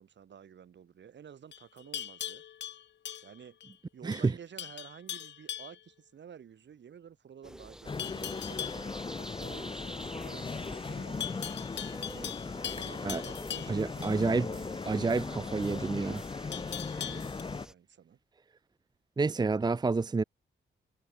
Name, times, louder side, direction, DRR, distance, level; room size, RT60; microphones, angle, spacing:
voice 1, 0.0-2.4 3.2-3.6 3.9-8.7 9.2-11.6 12.0-12.4 12.7-14.8 15.7-16.4 16.8-18.2, right 8 dB, 65° right, 5.8 m, -52 dB
Livestock farm animals working animals, 1.5-3.7 4.1-4.3 4.6-5.8 8.0-8.9 11.2-14.2 16.5-17.4, left 10 dB, 65° left, 0.6 m, -40 dB
sound 1, 7.4-17.7, equal, 5° right, 6.5 m, -48 dB
sound 2, 7.8-17.7, left 4 dB, 25° left, 0.8 m, -38 dB
voice 2, 13.7-14.4 14.9-16.2 19.2-20.2, right 3 dB, 20° right, 0.7 m, -29 dB
wide cardioid pair, 115°, 20 cm